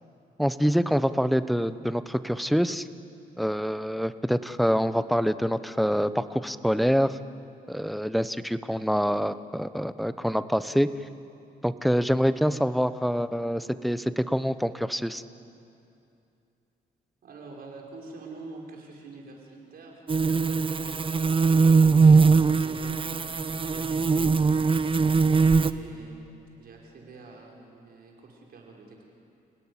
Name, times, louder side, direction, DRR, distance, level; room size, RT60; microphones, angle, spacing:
voice 1, 0.4-2.9 3.4-7.2 7.7-10.9 11.6-15.2, equal, ahead, 12 dB, 0.9 m, -26 dB
voice 2, 17.2-20.0 20.5-22.2 22.6-24.5 25.5-26.3 26.6-29.0, right 3 dB, 70° right, -1 dB, 5.7 m, -46 dB
sound 1, 20.1-25.7, right 4 dB, 35° right, 0.8 m, -21 dB
29.5 x 18.0 x 9.9 m, 2.6 s
cardioid pair, 90°, 16 cm